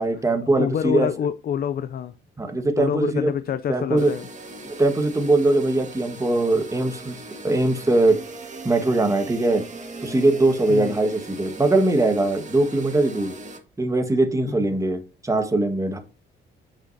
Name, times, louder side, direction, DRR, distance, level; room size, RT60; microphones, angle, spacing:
voice 1, 0.0-1.1 2.4-3.3 3.7-4.1 4.6-7.2 7.4-8.2 8.6-9.6 10.0-13.3 13.8-16.0, right 2 dB, 15° right, 1.6 m, -21 dB
voice 2, 0.6-2.1 2.8-4.3 10.7-11.0 14.5-14.7, left 8 dB, 50° left, 0.5 m, -26 dB
sound 1, 4.0-13.6, right 2 dB, 35° right, 2.0 m, -39 dB
8.5 x 6.1 x 2.7 m
cardioid pair, 90°, 20 cm